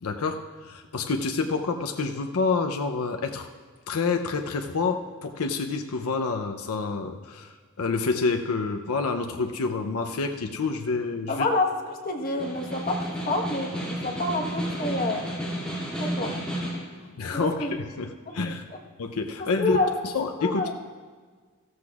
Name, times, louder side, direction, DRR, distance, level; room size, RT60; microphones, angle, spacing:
voice 1, 0.0-3.5 3.9-11.5 17.2-18.6 19.0-19.8 20.1-20.7, left 4 dB, 75° left, 5 dB, 0.6 m, -28 dB
voice 2, 11.3-15.4 16.0-16.3 17.3-17.8 18.3-18.4 19.6-19.9 20.4-20.7, left 2 dB, 40° left, 1 dB, 1.3 m, -28 dB
Snare drum, 12.2-16.9, equal, 5° left, 2.4 m, -32 dB
15.0 x 13.5 x 2.4 m, 1.5 s
head